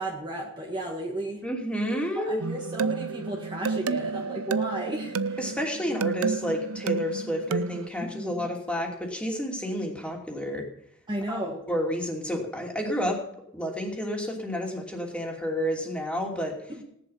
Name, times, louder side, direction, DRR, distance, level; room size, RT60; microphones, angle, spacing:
voice 1, 0.0-1.4 2.2-5.4 8.0-8.5 11.1-11.6 16.7-16.8, right 1 dB, 20° right, -1 dB, 1.8 m, -34 dB
voice 2, 1.4-2.4 5.4-10.7 11.3-11.4 11.7-13.2 13.5-16.7, equal, 5° left, 0 dB, 2.9 m, -30 dB
sound 1, 2.4-7.9, right 4 dB, 85° right, 0.6 m, -30 dB
17.0 x 11.0 x 5.7 m, 0.73 s
head